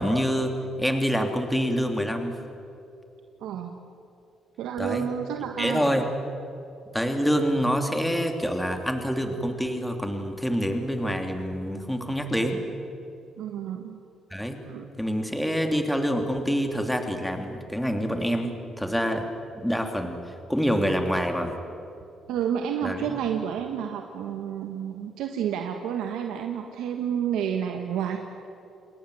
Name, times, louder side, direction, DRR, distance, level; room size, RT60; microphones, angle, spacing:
voice 1, 0.0-2.3 4.8-5.1 5.6-6.1 6.9-12.6 14.3-14.6 15.0-19.3 19.5-20.2 20.5-21.5 22.8-23.2, equal, 5° left, 5 dB, 2.9 m, -26 dB
voice 2, 3.4-3.7 4.6-6.0 13.4-14.0 14.6-14.9 22.3-28.2, right 8 dB, 90° right, 4 dB, 1.6 m, -30 dB
28.5 x 21.5 x 7.9 m, 2.8 s
cardioid pair, 90°, 0 cm